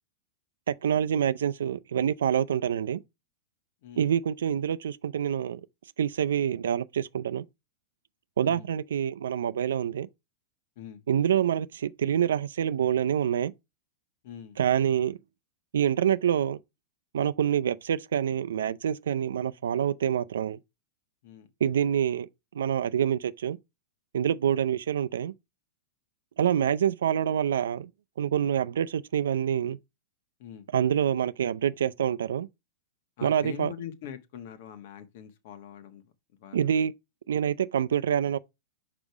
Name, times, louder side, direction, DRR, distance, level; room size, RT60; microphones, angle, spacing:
voice 1, 0.7-3.0 4.0-5.6 6.0-7.4 8.4-10.1 11.1-13.5 14.6-15.2 15.7-16.6 17.1-20.6 21.6-22.3 22.5-23.6 24.1-25.3 26.4-27.9 28.2-29.8 30.7-32.5 33.2-33.7 36.5-36.9 37.3-38.4, right 9 dB, 90° right, 0.5 m, -26 dB
voice 2, 14.2-14.6 21.2-21.5 30.4-30.7 33.2-36.0 36.4-36.7, left 9 dB, 55° left, 1.3 m, -43 dB
5.5 x 4.9 x 4.7 m
supercardioid pair, 150°, 0 cm